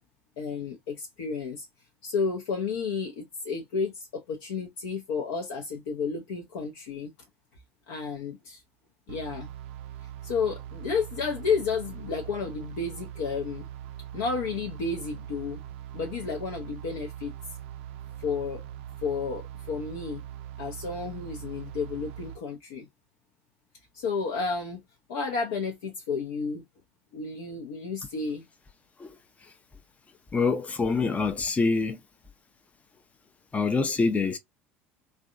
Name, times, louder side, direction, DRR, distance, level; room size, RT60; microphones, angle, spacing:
voice 1, 0.4-1.7 2.0-7.1 7.9-8.6 9.1-9.5 10.0-13.7 14.1-15.6 15.9-17.3 18.2-18.6 19.0-20.2 20.6-22.9 23.9-24.8 25.1-26.6 27.1-28.4, left 5 dB, 65° left, 0.6 m, -31 dB
sound 1, 9.1-22.4, right 11 dB, 60° right, 0.4 m, -41 dB
voice 2, 30.3-32.0 33.5-34.4, left 4 dB, 20° left, 0.5 m, -25 dB
3.4 x 2.2 x 2.5 m
figure-of-eight pair, 70°, 7 cm